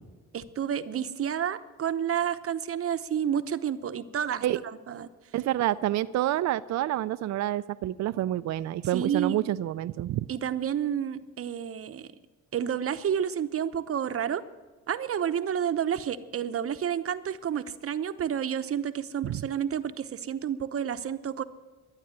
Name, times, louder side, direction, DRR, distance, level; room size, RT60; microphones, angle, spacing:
voice 1, 0.3-4.4 4.9-5.1 8.9-9.4 10.3-12.1 12.5-14.4 14.9-21.4, right 9 dB, 50° right, 11 dB, 0.9 m, -30 dB
voice 2, 5.3-10.3 19.2-19.4, right 13 dB, 65° right, 13 dB, 0.5 m, -28 dB
12.0 x 9.8 x 9.0 m, 1.3 s
cardioid pair, 90°, 30 cm